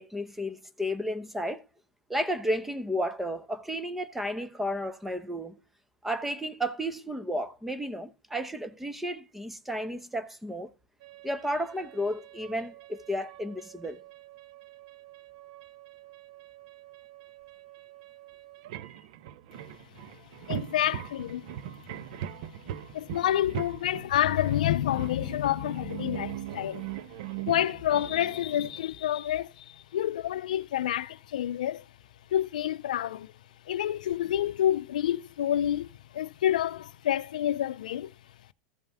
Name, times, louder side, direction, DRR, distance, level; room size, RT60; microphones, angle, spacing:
voice 1, 0.0-1.6 2.1-5.6 6.0-10.7 11.2-14.0, equal, 5° right, 1.0 m, -32 dB
sound 1, 11.0-28.8, right 12 dB, 65° right, 0.7 m, -42 dB
voice 2, 20.5-21.5 22.3-22.4 22.9-26.9 27.5-31.8 32.3-33.3 33.7-35.9 36.1-38.1, left 11 dB, 85° left, 0.5 m, -28 dB
14.5 x 5.5 x 3.5 m
supercardioid pair, 125°, 4 cm